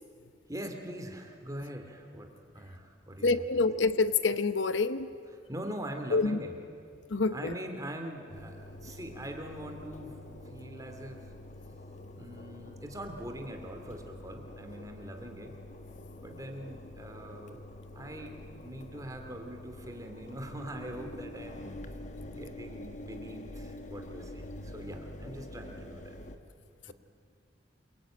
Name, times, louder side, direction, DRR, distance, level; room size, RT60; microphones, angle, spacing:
voice 1, 0.5-3.4 5.5-6.6 7.3-10.2 10.5-11.2 12.1-15.5 16.2-17.6 17.9-21.7 22.3-26.2, right 1 dB, 20° right, 5 dB, 2.6 m, -42 dB
voice 2, 3.2-5.1 6.1-6.4 7.1-7.5, left 3 dB, 80° left, 12 dB, 0.9 m, -27 dB
Engine, 8.3-26.4, left 1 dB, 40° left, 1.4 m, -46 dB
28.0 x 23.0 x 9.0 m, 2.3 s
head